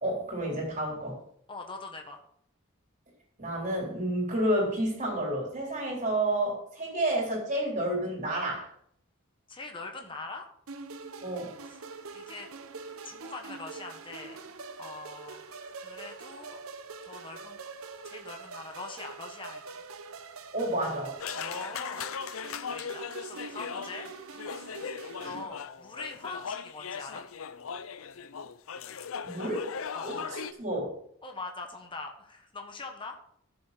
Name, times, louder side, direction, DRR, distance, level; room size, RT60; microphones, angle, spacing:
voice 1, 0.0-1.2 3.4-8.7 11.2-11.5 20.5-21.1 29.2-29.7 30.0-30.9, right 1 dB, 35° right, -2 dB, 3.9 m, -30 dB
voice 2, 1.5-2.2 9.5-10.5 12.1-12.5 13.0-14.4 14.8-15.4 15.7-16.6 17.0-17.6 18.0-19.8 21.4-22.2 22.7-24.1 24.6-24.7 25.2-27.2 29.4-29.6 29.9-30.3 31.2-33.2, left 3 dB, 25° left, 3 dB, 1.3 m, -42 dB
sound 1, 10.7-25.4, right 4 dB, 85° right, 0.9 m, -44 dB
sound 2, 21.2-30.5, left 6 dB, 75° left, 0.5 m, -38 dB
14.0 x 7.1 x 4.2 m, 0.66 s
head